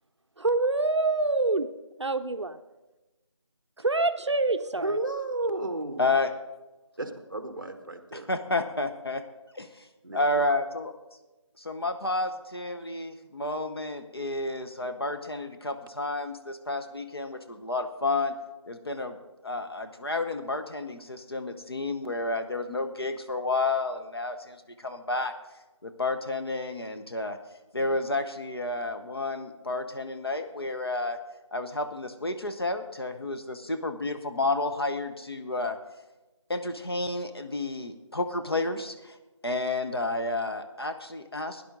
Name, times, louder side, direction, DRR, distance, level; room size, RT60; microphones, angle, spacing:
voice 1, 0.4-1.7 2.0-2.6 3.8-5.0, right 3 dB, 60° right, 9 dB, 0.6 m, -26 dB
voice 2, 4.8-6.1 7.0-8.3 10.0-10.4, right 2 dB, 40° right, 7 dB, 1.2 m, -33 dB
voice 3, 6.0-6.3 8.1-9.2 9.6-9.7 10.1-10.9 11.6-18.3 18.7-19.2 19.4-25.3 25.8-27.4 27.7-31.2 31.5-35.8 36.5-39.1 39.4-41.6, left 2 dB, 50° left, 6 dB, 1.0 m, -30 dB
17.0 x 10.5 x 3.9 m, 1.1 s
figure-of-eight pair, 180°, 16 cm